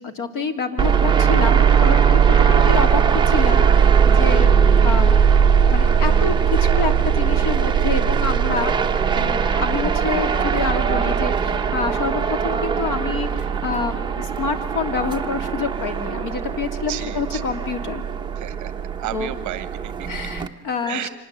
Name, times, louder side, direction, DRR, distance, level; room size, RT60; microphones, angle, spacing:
voice 1, 0.0-4.5 4.8-5.2 5.7-8.7 9.2-18.1 19.1-19.4 20.1-21.1, left 4 dB, 40° left, 8 dB, 2.5 m, -27 dB
sound 1, 0.8-20.5, right 7 dB, 10° right, 0.9 m, -19 dB
voice 2, 16.9-17.4 18.4-18.7 19.0-20.1 20.8-21.1, right 13 dB, 40° right, 13 dB, 1.2 m, -32 dB
25.0 x 19.5 x 8.0 m, 1.2 s
supercardioid pair, 130°, 46 cm